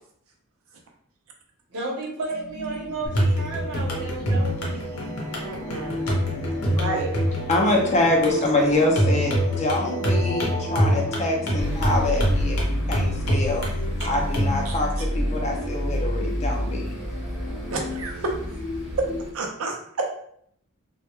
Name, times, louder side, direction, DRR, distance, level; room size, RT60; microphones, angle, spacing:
voice 1, 1.7-5.1, right 2 dB, 80° right, -4 dB, 0.9 m, -33 dB
sound 1, 2.3-19.2, equal, 35° right, 0.8 m, -35 dB
sound 2, 3.1-14.6, equal, 70° left, 0.7 m, -26 dB
voice 2, 5.4-6.0 6.6-7.1 14.7-14.8 17.7-18.1 19.3-19.8, right 3 dB, 65° right, 2 dB, 0.5 m, -31 dB
voice 3, 7.5-13.7 14.0-17.0, left 2 dB, 30° left, 0 dB, 0.5 m, -25 dB
sound 3, 11.6-19.3, equal, ahead, 0.7 m, -29 dB
2.2 x 2.1 x 2.9 m, 0.66 s
head